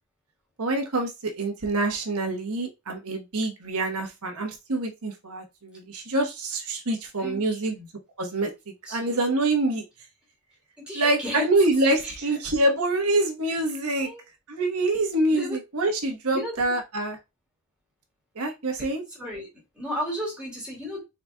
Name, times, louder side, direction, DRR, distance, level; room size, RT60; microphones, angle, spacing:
voice 1, 0.6-7.7 8.2-8.5 8.9-9.8 10.9-14.1 14.5-17.2 18.3-19.0, right 2 dB, 90° right, 1.2 m, -26 dB
voice 2, 7.2-7.9 8.9-9.2 10.8-11.5 12.0-12.1 14.0-14.2 15.3-15.6 16.3-16.6 18.8-19.5 19.7-21.0, left 1 dB, 5° right, 2.0 m, -34 dB
4.1 x 4.0 x 2.2 m
head